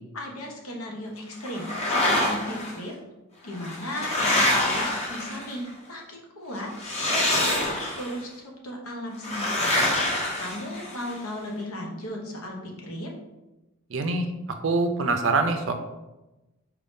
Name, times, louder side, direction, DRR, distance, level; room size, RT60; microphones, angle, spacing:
voice 1, 0.1-3.0 3.4-9.9 10.1-13.1, left 1 dB, 80° left, 0 dB, 0.9 m, -36 dB
sound 1, 1.5-2.7 3.5-5.7 6.7-8.2 9.2-11.1, left 1 dB, 30° left, 0.7 m, -26 dB
voice 2, 13.9-14.3 14.6-15.7, right 3 dB, 60° right, 6 dB, 0.5 m, -24 dB
4.5 x 2.6 x 3.6 m, 1.0 s
head